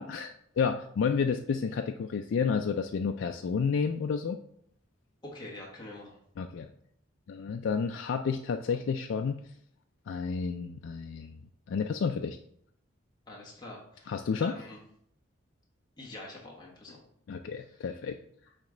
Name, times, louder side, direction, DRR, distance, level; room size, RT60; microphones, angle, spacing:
voice 1, 0.0-4.4 6.4-6.7 7.3-9.4 10.1-11.4 11.7-12.4 14.1-14.5 17.3-18.2, left 6 dB, 75° left, 5 dB, 0.3 m, -30 dB
voice 2, 5.2-6.2 13.3-14.8 16.0-17.0 17.5-17.8, left 2 dB, 20° left, -3 dB, 1.2 m, -45 dB
8.6 x 3.1 x 3.8 m, 0.68 s
head